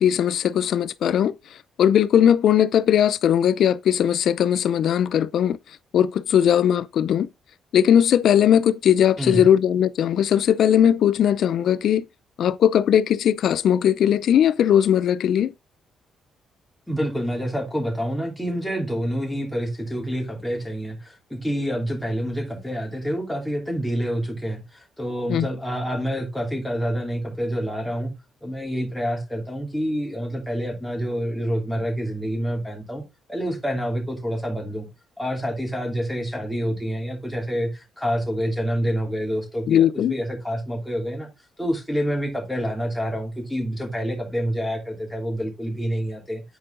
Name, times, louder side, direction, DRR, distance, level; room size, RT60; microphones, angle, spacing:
voice 1, 0.0-1.3 1.8-5.6 5.9-7.3 7.7-12.0 12.4-15.5 25.3-25.5 39.7-40.1, left 9 dB, 65° left, 0.6 m, -19 dB
voice 2, 16.9-28.1 28.4-33.0 33.3-34.9 35.2-41.3 41.6-46.4, equal, ahead, 2.9 m, -27 dB
9.4 x 4.7 x 3.8 m
cardioid pair, 115°, 0 cm